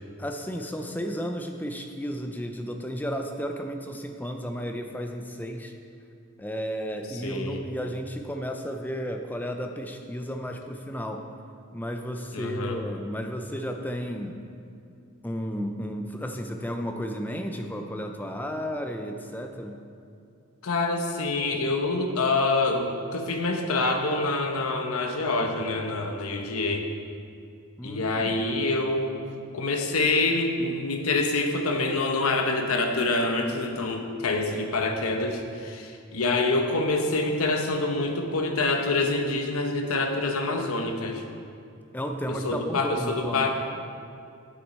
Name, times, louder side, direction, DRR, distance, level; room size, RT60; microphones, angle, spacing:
voice 1, 0.2-5.7 6.4-11.2 11.7-14.4 15.2-19.8 27.8-28.4 41.9-43.5, equal, 10° left, 5 dB, 0.4 m, -33 dB
voice 2, 7.1-7.6 12.3-12.8 20.6-26.9 27.8-29.2 29.5-41.2 42.3-43.5, left 2 dB, 80° left, 4 dB, 0.9 m, -26 dB
8.8 x 8.0 x 4.3 m, 2.5 s
head